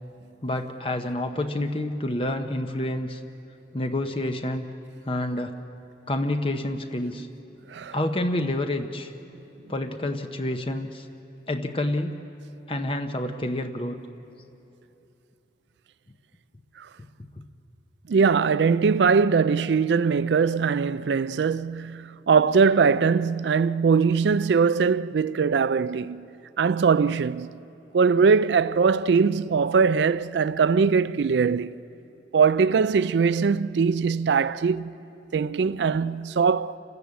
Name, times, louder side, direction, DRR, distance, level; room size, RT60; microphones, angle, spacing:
voice 1, 0.4-3.2 3.7-4.6 5.1-5.5 6.1-7.3 7.9-9.1 9.7-11.1 11.5-12.2 12.7-14.0 17.4-17.5, left 1 dB, 30° left, 0.8 m, -28 dB
voice 2, 18.1-26.3 26.6-27.5 27.9-31.7 32.3-35.0 35.3-36.8, right 5 dB, 80° right, 0.4 m, -21 dB
29.5 x 13.5 x 8.2 m
head